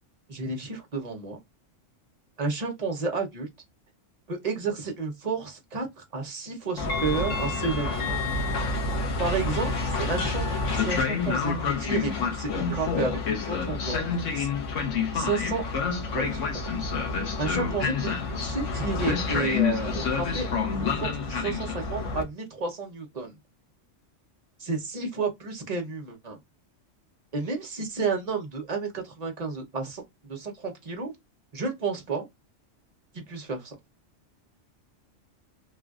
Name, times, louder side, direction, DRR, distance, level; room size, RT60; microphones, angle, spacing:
voice 1, 0.3-1.4 2.4-3.5 4.3-8.2 9.2-10.4 10.7-14.0 14.3-14.5 15.1-15.6 16.1-16.4 17.4-23.3 24.6-26.4 27.3-31.1 31.5-32.3 33.1-33.8, right 4 dB, 35° right, 0.8 m, -31 dB
Train, 6.8-22.2, left 4 dB, 75° left, 1.2 m, -28 dB
3.3 x 2.4 x 2.4 m
omnidirectional pair, 1.3 m